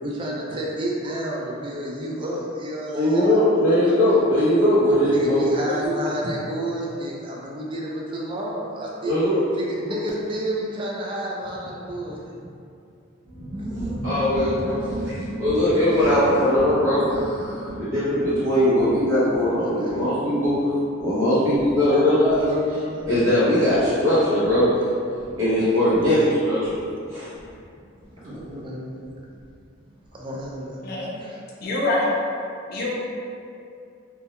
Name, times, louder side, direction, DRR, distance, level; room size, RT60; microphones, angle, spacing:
voice 1, 0.0-3.4 3.8-4.0 5.1-9.1 9.5-12.3 13.7-14.2 14.8-14.9 19.1-20.1 21.3-21.4 21.9-23.1 26.0-26.3 28.1-29.0 30.1-31.7, right 1 dB, 25° right, -3 dB, 0.3 m, -31 dB
voice 2, 2.9-5.9 9.0-9.4 14.0-20.6 21.0-22.5 23.1-24.7 25.4-26.6 27.1-27.3, left 1 dB, 80° right, -14 dB, 0.7 m, -20 dB
sound 1, 13.2-29.5 29.8-29.9 30.1-30.5, right 1 dB, 45° right, 0.9 m, -37 dB
voice 3, 31.6-32.1 32.7-32.9, left 2 dB, 50° left, -5 dB, 0.4 m, -24 dB
2.2 x 2.2 x 2.8 m, 2.5 s
head